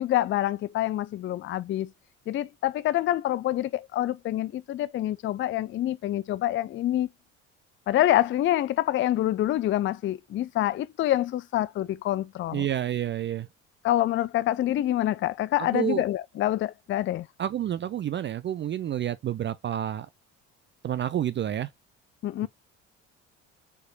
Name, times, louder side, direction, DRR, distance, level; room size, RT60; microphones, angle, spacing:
voice 1, 0.0-1.9 2.3-7.1 7.9-12.7 13.8-17.3 22.2-22.5, left 13 dB, 35° left, 0.4 m, -26 dB
voice 2, 12.5-13.5 15.7-16.0 17.4-20.1 20.8-21.7, right 11 dB, 35° right, 0.4 m, -29 dB
4.7 x 4.6 x 2.4 m
hypercardioid pair, 60°, 34 cm